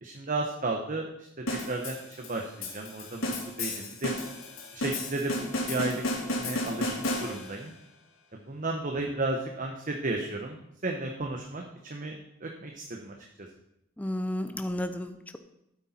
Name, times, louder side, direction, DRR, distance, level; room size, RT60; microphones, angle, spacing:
voice 1, 0.0-1.3 1.7-3.3 3.6-4.1 4.7-7.7 8.3-12.2 12.4-13.1, right 2 dB, 40° right, 2 dB, 1.1 m, -33 dB
sound 1, 1.5-7.7, left 1 dB, 90° left, 3.2 m, -33 dB
voice 2, 14.0-15.4, left 1 dB, 10° left, 7 dB, 0.6 m, -32 dB
13.0 x 8.4 x 4.4 m, 0.83 s
head